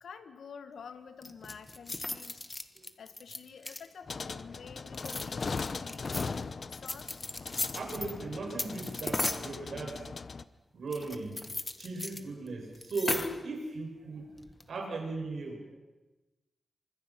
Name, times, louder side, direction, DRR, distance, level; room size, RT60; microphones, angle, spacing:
voice 1, 0.0-2.4 3.0-6.3 6.7-7.3, left 6 dB, 85° left, 9 dB, 1.9 m, -49 dB
sound 1, 1.2-4.1 4.9-6.3 6.9-8.1 8.6-9.5 10.9-12.2 12.5-12.6 12.8-13.5 14.4-14.7, left 2 dB, 25° left, 1.6 m, -36 dB
sound 2, 4.1-10.4, left 4 dB, 50° left, 0.9 m, -39 dB
voice 2, 7.7-10.0 10.7-11.4 11.8-14.3 14.7-15.8, right 3 dB, 75° right, 1 dB, 7.3 m, -37 dB
29.0 x 25.5 x 6.1 m, 1.1 s
wide cardioid pair, 115°, 0 cm